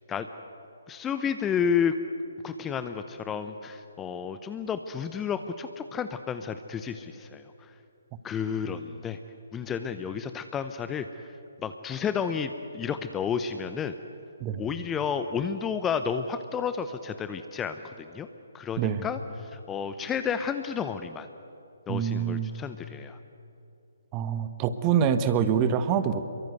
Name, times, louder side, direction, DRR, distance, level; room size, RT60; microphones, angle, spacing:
voice 1, 0.9-2.0 2.4-7.7 8.2-9.2 9.5-11.3 11.6-13.9 14.6-18.3 18.5-21.3 21.9-23.2, left 7 dB, 10° left, 9 dB, 0.8 m, -31 dB
voice 2, 21.9-22.5 24.1-26.3, right 8 dB, 20° right, 11 dB, 1.4 m, -25 dB
27.5 x 23.0 x 8.0 m, 2.9 s
figure-of-eight pair, 135°, 0 cm